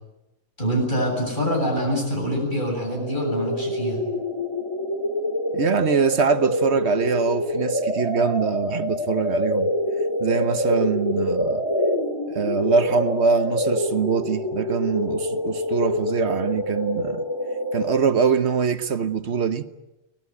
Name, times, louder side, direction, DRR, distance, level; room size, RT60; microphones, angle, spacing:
voice 1, 0.6-4.0, equal, 40° left, 7.7 m, -25 dB
sound 1, 2.8-18.0, left 1 dB, 20° left, 3.1 m, -26 dB
voice 2, 5.5-9.7 10.2-11.6 12.3-17.2 17.7-19.7, right 5 dB, 60° right, 1.3 m, -23 dB
24.5 x 19.0 x 9.6 m
omnidirectional pair, 1.3 m